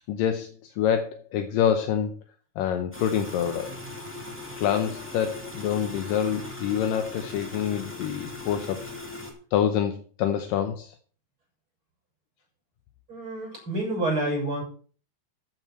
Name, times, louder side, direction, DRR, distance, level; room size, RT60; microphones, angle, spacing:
voice 1, 0.1-2.1 2.6-3.7 4.6-8.9 9.5-11.0 13.6-13.7, left 9 dB, 75° left, 7 dB, 2.2 m, -26 dB
sound 1, 2.9-9.3, left 2 dB, 5° left, 1.6 m, -39 dB
voice 2, 13.1-14.6, right 1 dB, 30° right, -1 dB, 7.1 m, -28 dB
13.5 x 9.2 x 4.4 m, 0.41 s
omnidirectional pair, 4.8 m